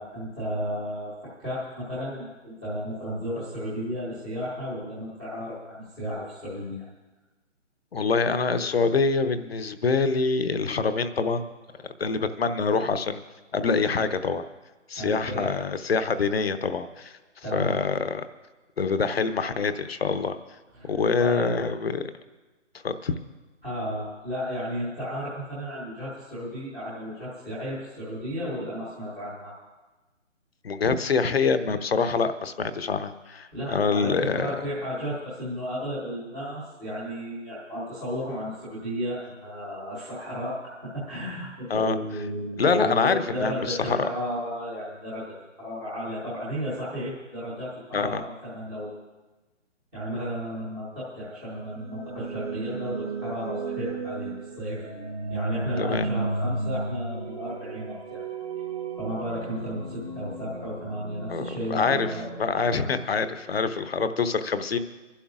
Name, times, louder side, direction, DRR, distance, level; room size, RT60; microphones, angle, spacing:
voice 1, 0.0-6.8 15.0-15.5 17.4-17.8 20.8-20.9 21.2-21.5 23.6-29.5 33.5-45.3 45.6-48.9 49.9-54.8 55.3-58.2 59.0-62.3 62.7-62.9, equal, ahead, -11 dB, 0.7 m, -33 dB
voice 2, 7.9-11.5 12.0-13.2 13.5-14.4 14.9-17.2 17.5-18.2 18.8-20.4 20.8-22.0 22.8-23.1 30.6-34.5 41.7-42.0 42.6-44.1 47.9-48.2 55.8-56.1 61.3-62.1 62.4-64.8, left 4 dB, 55° left, 10 dB, 0.8 m, -25 dB
sound 1, 51.6-63.5, right 3 dB, 30° right, 1.1 m, -34 dB
28.0 x 11.5 x 2.4 m, 1.2 s
figure-of-eight pair, 160°, 37 cm